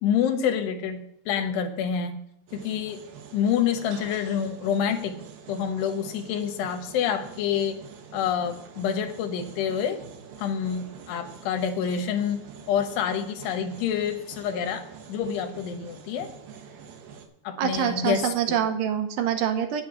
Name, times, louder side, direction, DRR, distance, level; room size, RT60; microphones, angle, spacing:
voice 1, 0.0-2.2 2.5-3.0 3.3-5.2 5.5-7.8 8.1-10.0 10.4-12.4 12.7-14.8 15.1-16.3 17.4-18.6, left 8 dB, 80° left, 6 dB, 3.1 m, -27 dB
sound 1, 2.5-17.3, right 7 dB, 70° right, 2.6 m, -45 dB
voice 2, 17.6-19.8, right 9 dB, 85° right, 6 dB, 3.0 m, -25 dB
9.0 x 8.3 x 5.6 m, 0.77 s
omnidirectional pair, 4.9 m